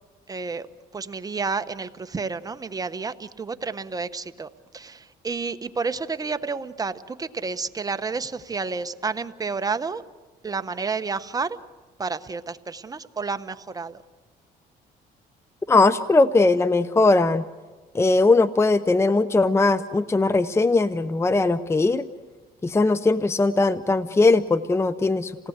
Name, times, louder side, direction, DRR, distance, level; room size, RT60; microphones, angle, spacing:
voice 1, 0.3-0.7 0.9-10.0 10.4-11.6 12.0-14.0, right 4 dB, 20° right, 10 dB, 1.0 m, -30 dB
voice 2, 15.7-17.4 17.9-22.0 22.6-25.3, left 3 dB, 15° left, 14 dB, 0.6 m, -19 dB
28.0 x 18.5 x 8.1 m, 1.3 s
cardioid pair, 110°, 17 cm